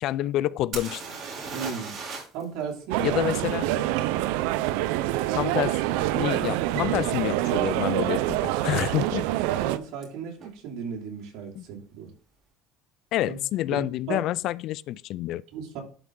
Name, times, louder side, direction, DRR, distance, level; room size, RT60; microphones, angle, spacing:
voice 1, 0.0-1.0 3.0-3.7 5.3-5.8 6.1-9.3 11.6-11.7 13.1-15.4, left 14 dB, 60° left, 0.3 m, -28 dB
sound 1, 0.7-2.4 2.7-2.8 6.2-6.3 7.0-7.1 7.4-8.0 10.0-10.1 10.4-10.5, right 4 dB, 45° right, 3.4 m, -37 dB
voice 2, 1.5-2.0 2.3-3.2 9.6-12.1 13.2-13.4 13.7-14.3 15.5-15.8, right 6 dB, 65° right, 2.9 m, -35 dB
sound 2, 2.9-9.8, right 15 dB, 80° right, 0.5 m, -26 dB
11.5 x 4.6 x 3.8 m
supercardioid pair, 115°, 0 cm